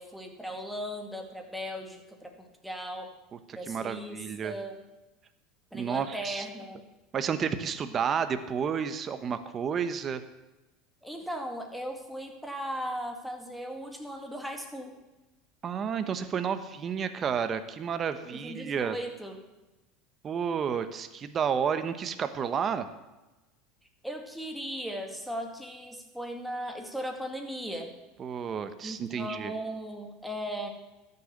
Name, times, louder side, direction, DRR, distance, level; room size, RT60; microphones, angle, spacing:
voice 1, 0.0-3.1 3.5-4.2 4.4-4.8 5.7-6.8 11.0-14.9 18.3-19.4 24.0-27.9 28.8-30.7, equal, ahead, 2 dB, 2.2 m, -37 dB
voice 2, 3.5-4.5 5.7-6.5 7.1-10.2 15.6-19.0 20.2-22.9 28.2-29.5, right 7 dB, 35° right, 10 dB, 1.0 m, -31 dB
12.5 x 6.9 x 8.2 m, 1.1 s
supercardioid pair, 105°, 0 cm